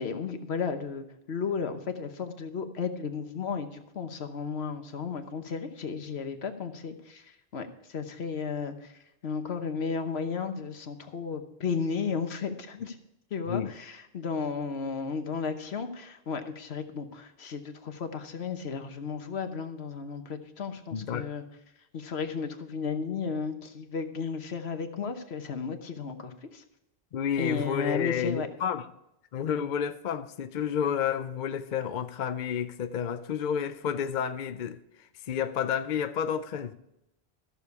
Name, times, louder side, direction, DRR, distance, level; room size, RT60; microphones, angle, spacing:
voice 1, 0.0-13.0 13.3-21.4 21.9-26.6 27.4-28.5, left 5 dB, 80° left, 1.3 m, -34 dB
voice 2, 20.9-21.3 27.1-28.9 29.3-36.7, left 8 dB, 55° left, 0.6 m, -30 dB
14.0 x 6.9 x 4.7 m
omnidirectional pair, 1.1 m